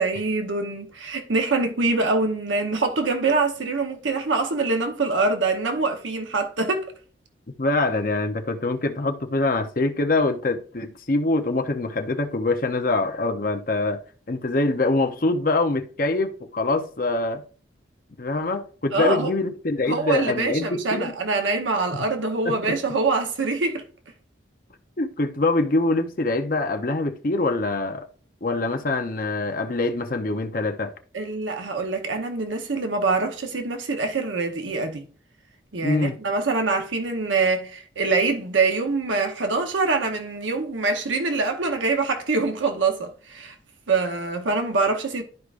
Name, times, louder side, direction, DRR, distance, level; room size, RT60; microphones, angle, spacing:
voice 1, 0.0-6.8 18.9-19.3 19.9-23.8 31.1-35.0 35.7-43.5 43.9-45.2, right 3 dB, 85° right, 1.0 m, -24 dB
voice 2, 7.6-14.0 14.3-17.4 18.2-21.2 21.9-22.0 22.4-22.8 25.0-28.1 28.4-30.9 35.8-36.2, left 2 dB, 45° left, 0.7 m, -24 dB
12.0 x 4.8 x 2.5 m
head